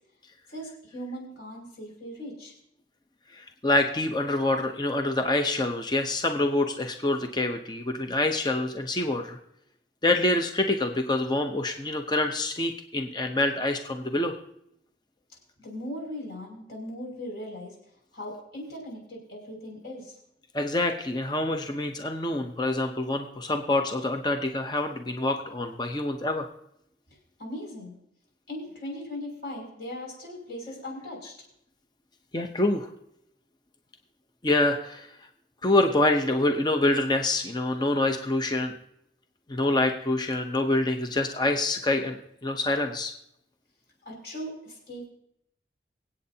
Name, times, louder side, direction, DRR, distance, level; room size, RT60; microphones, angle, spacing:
voice 1, 0.5-2.5 15.6-17.7 18.1-20.2 27.1-27.9 28.5-31.3 44.0-45.1, left 1 dB, 60° left, -2 dB, 5.9 m, -39 dB
voice 2, 3.3-9.4 10.0-14.3 20.5-26.5 32.3-32.9 34.4-35.1 35.6-38.7 39.5-43.1, left 2 dB, 20° left, 5 dB, 0.7 m, -26 dB
24.5 x 8.6 x 2.8 m, 0.76 s
head